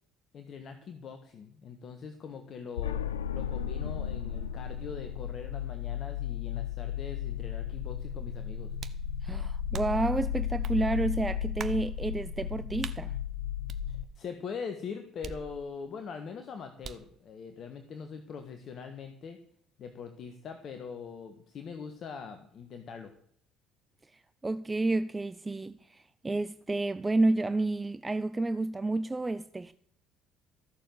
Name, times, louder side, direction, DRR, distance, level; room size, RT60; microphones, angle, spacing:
voice 1, 0.3-3.1 3.3-8.7 13.9-19.4 19.8-23.1, left 6 dB, 50° left, 1.5 m, -42 dB
sound 1, 2.8-14.0, left 9 dB, 90° left, 0.5 m, -34 dB
sound 2, 8.8-9.1 9.7-10.1 10.6-10.8 11.6-11.9 12.8-13.0 13.7-14.3 15.2-15.9 16.8-17.2, right 6 dB, 50° right, 1.0 m, -43 dB
voice 2, 9.2-13.2 24.4-29.7, right 2 dB, 20° right, 0.6 m, -30 dB
14.5 x 6.9 x 7.8 m
hypercardioid pair, 55°, 0 cm